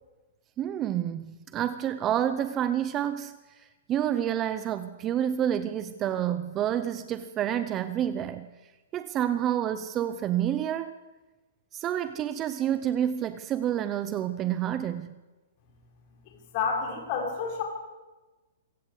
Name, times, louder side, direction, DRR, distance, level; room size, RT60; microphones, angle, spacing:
voice 1, 0.6-8.5 8.9-10.9 11.7-15.1, right 10 dB, 20° right, 12 dB, 0.7 m, -29 dB
voice 2, 16.5-17.6, left 5 dB, 30° left, 1 dB, 5.6 m, -29 dB
26.5 x 16.5 x 8.3 m, 1.2 s
hypercardioid pair, 170°, 0 cm